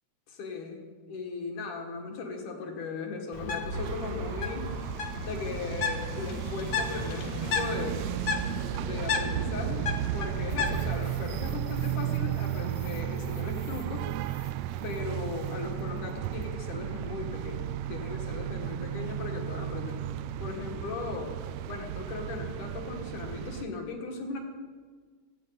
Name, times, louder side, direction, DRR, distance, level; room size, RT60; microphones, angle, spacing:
voice 1, 0.3-4.7 5.2-8.0 8.4-14.1 14.8-20.0 20.4-21.3 21.7-24.4, left 4 dB, 80° left, 1 dB, 3.5 m, -38 dB
Bird, 3.3-11.1, left 4 dB, 50° left, 1.4 m, -34 dB
sound 1, 3.7-23.6, right 12 dB, 85° right, 1.5 m, -34 dB
sound 2, 10.5-16.6, left 4 dB, 65° left, 2.4 m, -52 dB
17.0 x 15.5 x 4.2 m, 1.5 s
omnidirectional pair, 3.5 m